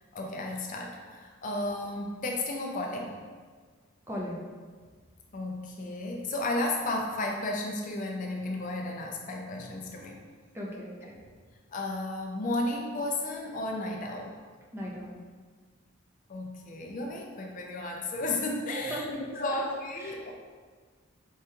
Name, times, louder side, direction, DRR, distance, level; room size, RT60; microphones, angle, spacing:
voice 1, 0.1-3.2 5.3-10.2 11.7-14.3 16.3-19.0 19.4-20.3, left 2 dB, 40° left, 0 dB, 0.4 m, -33 dB
voice 2, 4.1-4.4 10.5-11.2 14.7-15.2 18.7-19.6 20.0-20.2, equal, 15° right, -4 dB, 0.6 m, -37 dB
4.6 x 3.4 x 2.8 m, 1.5 s
head